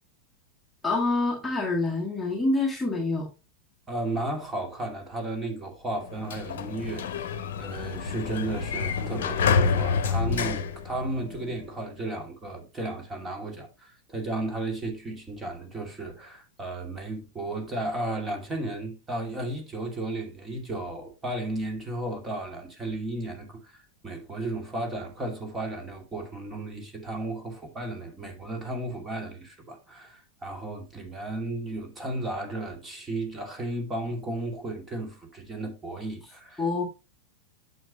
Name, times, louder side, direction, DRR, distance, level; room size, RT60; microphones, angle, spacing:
voice 1, 0.8-3.3 36.6-36.8, left 3 dB, 5° left, 1.7 m, -26 dB
voice 2, 3.9-36.6, right 2 dB, 15° right, 2.5 m, -34 dB
Sliding door, 6.0-11.6, left 6 dB, 60° left, 1.0 m, -28 dB
9.1 x 6.5 x 3.0 m
figure-of-eight pair, 90°, 0 cm